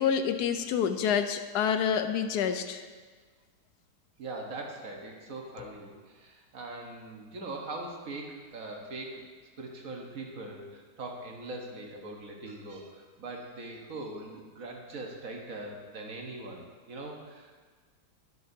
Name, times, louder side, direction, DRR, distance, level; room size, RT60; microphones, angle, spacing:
voice 1, 0.0-2.8 5.6-5.7, left 7 dB, 75° left, 8 dB, 1.1 m, -28 dB
voice 2, 4.2-9.3 9.6-17.5, right 2 dB, 55° right, 0 dB, 1.5 m, -41 dB
11.0 x 9.8 x 2.7 m, 1.5 s
omnidirectional pair, 1.8 m